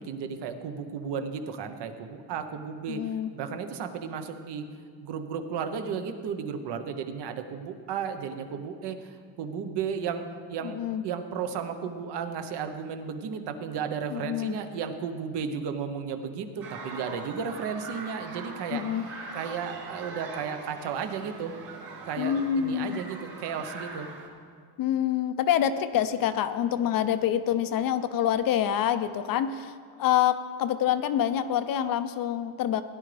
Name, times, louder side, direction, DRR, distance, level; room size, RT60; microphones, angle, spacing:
voice 1, 0.0-4.6 5.0-18.8 19.3-21.5 22.1-24.1, right 6 dB, 60° right, 8 dB, 1.1 m, -34 dB
voice 2, 2.9-3.3 10.6-11.0 14.1-14.5 18.7-19.1 22.2-23.0 24.8-29.7 30.0-32.8, left 10 dB, 45° left, 11 dB, 0.6 m, -26 dB
sound 1, 16.6-24.3, right 3 dB, 40° right, 3.1 m, -42 dB
17.0 x 11.0 x 3.4 m, 2.1 s
cardioid pair, 135°, 47 cm